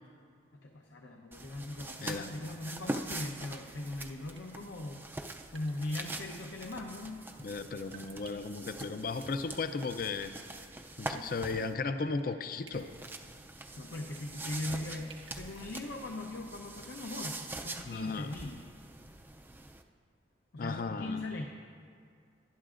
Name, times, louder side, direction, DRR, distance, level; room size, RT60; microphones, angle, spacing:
voice 1, 0.6-5.0 5.5-7.2 11.1-11.7 13.8-18.6 20.5-21.5, left 2 dB, 80° left, 2 dB, 0.8 m, -40 dB
sound 1, 1.3-11.7 12.7-19.8, right 2 dB, 10° right, 0.4 m, -44 dB
voice 2, 2.0-2.3 7.4-10.4 11.0-12.9 17.8-18.3 20.6-21.2, left 4 dB, 50° left, 9 dB, 0.5 m, -35 dB
sound 2, 3.6-3.8 4.4-4.6 5.5-5.9 6.3-6.6 7.9-8.7 10.2-10.5 10.9-11.0 12.2-12.4 12.6-13.1 14.1-14.4 15.1-15.4, right 6 dB, 80° right, 1.5 m, -55 dB
19.5 x 11.5 x 2.5 m, 2.2 s
head